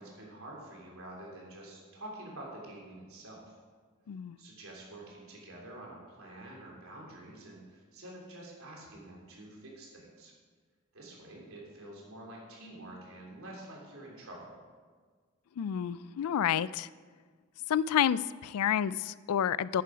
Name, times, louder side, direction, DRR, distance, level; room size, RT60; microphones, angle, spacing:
voice 1, 0.0-3.5 4.4-10.3 10.9-14.6, right 1 dB, 70° right, -2 dB, 3.4 m, -48 dB
voice 2, 15.6-16.9 17.7-19.8, left 9 dB, 85° left, 18 dB, 0.3 m, -29 dB
10.0 x 9.5 x 5.1 m, 1.5 s
head